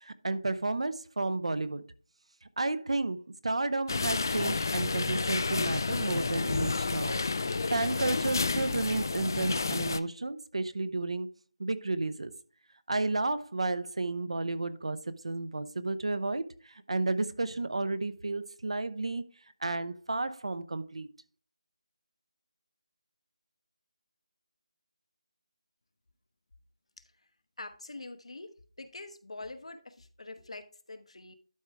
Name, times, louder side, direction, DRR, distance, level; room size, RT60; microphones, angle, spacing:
voice 1, 0.0-1.8 2.6-3.2 3.4-7.2 7.7-11.3 11.6-12.3 12.9-15.0 15.2-19.2 19.6-21.1, right 2 dB, 70° right, 0.8 m, -32 dB
sound 1, 3.9-10.0, left 4 dB, 35° left, 0.4 m, -30 dB
voice 2, 27.6-28.5 28.8-31.3, left 2 dB, 75° left, 1.1 m, -44 dB
12.0 x 4.6 x 3.4 m
figure-of-eight pair, 175°, 3 cm